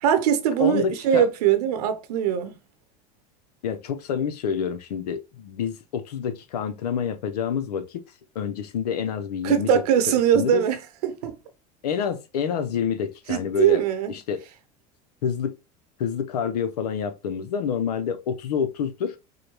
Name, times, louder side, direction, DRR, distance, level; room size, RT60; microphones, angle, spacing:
voice 1, 0.0-2.5 9.4-11.4 13.3-14.1, right 9 dB, 80° right, 0.9 m, -21 dB
voice 2, 0.6-1.3 3.6-8.0 8.3-9.8 10.1-10.6 11.8-13.8 14.1-14.4 15.2-15.6 16.0-19.2, left 7 dB, 90° left, 0.7 m, -28 dB
4.9 x 2.3 x 3.1 m
hypercardioid pair, 95°, 20 cm